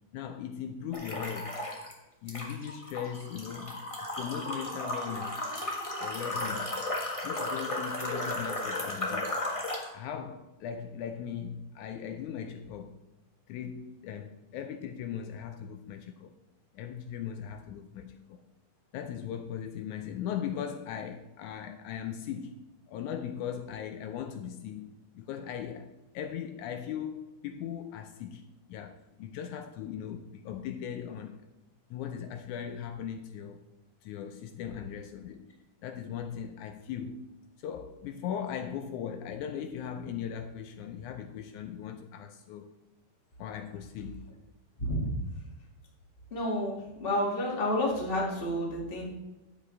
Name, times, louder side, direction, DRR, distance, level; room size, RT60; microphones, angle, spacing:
voice 1, 0.1-1.6 2.2-3.9 4.1-5.5 6.0-6.8 7.2-9.3 9.9-13.0 13.5-16.3 16.7-18.4 18.9-22.6 22.9-24.9 25.2-31.4 31.9-33.6 34.0-35.5 35.8-37.3 37.6-42.7 43.4-44.3, left 8 dB, 80° left, 1.9 m, -39 dB
sound 1, 0.9-1.9 2.3-9.9, left 1 dB, 60° left, 0.3 m, -34 dB
voice 2, 44.8-45.1 46.3-49.0, left 1 dB, 20° left, 1.6 m, -30 dB
11.5 x 8.1 x 3.2 m
omnidirectional pair, 3.6 m